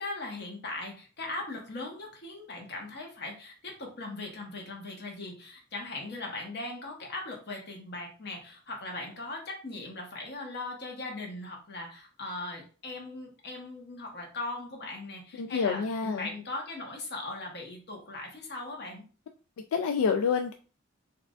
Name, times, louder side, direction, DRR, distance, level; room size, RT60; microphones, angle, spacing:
voice 1, 0.0-19.0, left 2 dB, 45° left, 0 dB, 1.0 m, -39 dB
voice 2, 15.4-16.3 19.7-20.5, left 6 dB, 75° left, 6 dB, 0.3 m, -27 dB
4.5 x 2.4 x 2.4 m, 0.37 s
head